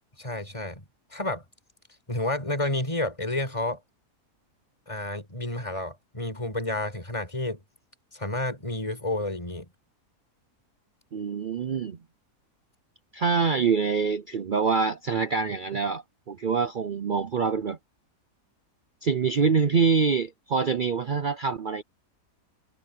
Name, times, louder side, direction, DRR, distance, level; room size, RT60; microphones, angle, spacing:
voice 1, 0.2-0.8 1.1-1.4 2.1-3.8 4.9-7.6 8.1-9.7, left 1 dB, 20° left, 5.4 m, -30 dB
voice 2, 11.1-12.0 13.1-17.8 19.0-21.8, right 5 dB, 65° right, 0.5 m, -25 dB
omnidirectional pair, 1.7 m